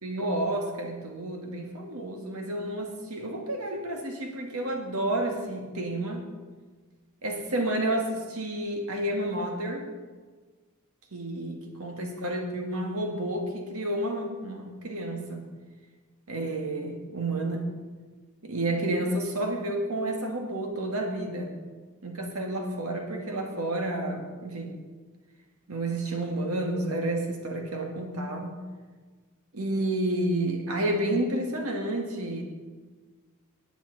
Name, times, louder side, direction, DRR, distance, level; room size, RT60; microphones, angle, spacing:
voice 1, 0.0-6.3 7.2-9.9 11.1-15.4 16.3-17.7 18.4-21.5 22.0-24.8 25.7-28.6 29.5-32.4, right 1 dB, 80° right, 2 dB, 1.9 m, -30 dB
17.5 x 9.4 x 4.0 m, 1.4 s
head